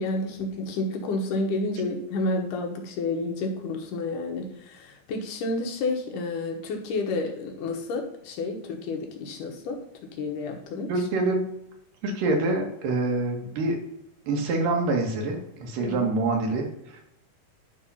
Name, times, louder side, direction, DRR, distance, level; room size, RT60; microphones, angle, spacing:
voice 1, 0.0-9.8 10.2-10.9 15.8-16.1, left 2 dB, 75° left, 3 dB, 2.6 m, -30 dB
voice 2, 10.9-11.4 12.0-13.8 14.3-17.0, right 2 dB, 85° right, 2 dB, 3.1 m, -26 dB
10.5 x 3.7 x 5.5 m, 0.81 s
omnidirectional pair, 3.8 m